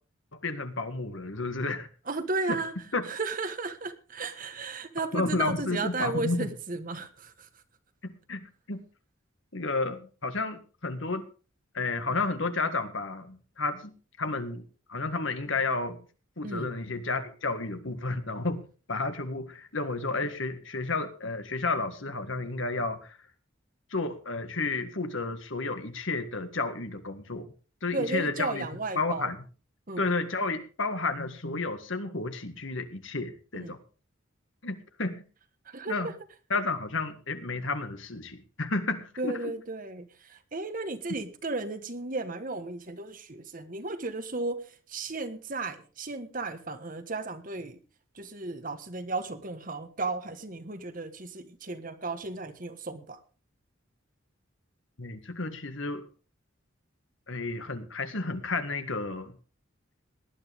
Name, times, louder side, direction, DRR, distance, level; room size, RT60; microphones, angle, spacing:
voice 1, 0.3-1.9 2.5-2.6 2.9-3.1 5.1-6.5 8.0-8.8 9.5-11.3 11.7-16.0 16.4-23.2 23.9-27.5 27.8-28.7 28.9-29.4 30.0-33.8 34.6-35.2 35.9-36.1 36.5-39.5 55.0-56.0 57.3-59.3, left 3 dB, 70° left, 8 dB, 1.8 m, -32 dB
voice 2, 2.1-2.7 3.1-7.3 16.4-16.7 27.9-29.3 29.9-30.0 33.5-33.8 35.7-36.1 39.2-44.6 44.9-47.8 48.2-53.2, right 3 dB, 40° right, 9 dB, 1.3 m, -34 dB
18.5 x 11.5 x 3.6 m, 0.36 s
head